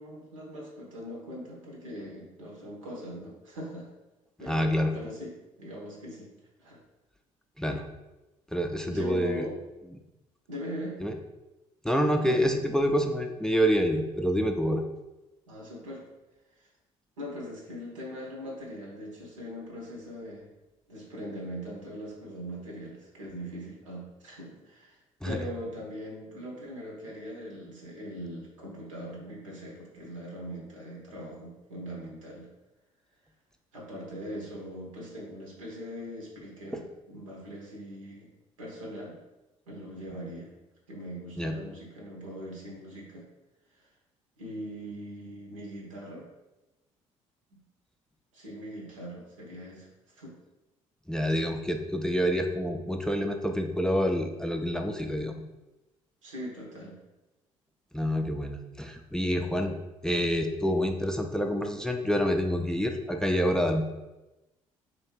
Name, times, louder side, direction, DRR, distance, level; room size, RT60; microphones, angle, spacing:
voice 1, 0.0-3.9 4.4-6.3 6.6-6.8 8.9-9.5 10.5-11.0 12.2-12.5 15.5-16.0 17.2-20.5 20.9-32.5 33.7-38.3 38.6-39.1 39.7-40.5 40.9-43.2 44.4-46.3 47.5-47.6 48.3-49.9 50.2-50.3 56.2-57.0, equal, 85° right, -2 dB, 1.0 m, -41 dB
voice 2, 4.5-4.9 7.6-7.9 8.5-9.5 11.0-11.1 11.8-14.8 25.2-25.4 41.4-41.5 51.1-55.4 57.9-59.8 60.0-63.8, equal, 5° left, 4 dB, 0.4 m, -27 dB
3.2 x 3.0 x 4.4 m, 1.0 s
figure-of-eight pair, 50°, 16 cm